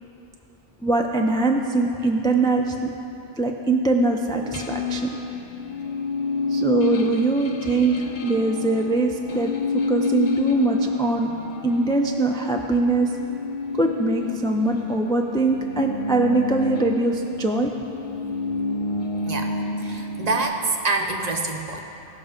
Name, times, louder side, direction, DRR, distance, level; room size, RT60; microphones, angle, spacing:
voice 1, 0.8-2.9 3.4-5.1 6.5-9.5 9.9-11.3 11.6-13.1 13.8-17.7, right 2 dB, 5° left, 2 dB, 0.3 m, -22 dB
sound 1, 4.4-15.0 15.3-20.4, left 3 dB, 55° left, 0.7 m, -29 dB
voice 2, 19.8-21.8, right 3 dB, 45° right, 3 dB, 0.8 m, -26 dB
15.5 x 5.9 x 5.1 m, 2.9 s
omnidirectional pair, 1.1 m